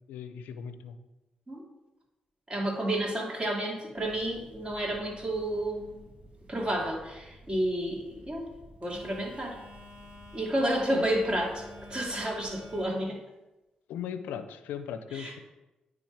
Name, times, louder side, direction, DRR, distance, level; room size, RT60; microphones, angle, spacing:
voice 1, 0.1-1.0 10.9-11.0 13.9-15.4, left 8 dB, 80° left, 11 dB, 0.5 m, -38 dB
voice 2, 2.5-6.2 6.5-8.5 8.8-9.6 10.3-13.2 15.1-15.3, right 1 dB, 30° right, -2 dB, 2.8 m, -31 dB
Telephone, 3.9-12.9, left 1 dB, 50° right, 2.2 m, -50 dB
9.7 x 3.6 x 4.8 m, 1.0 s
hypercardioid pair, 45°, 3 cm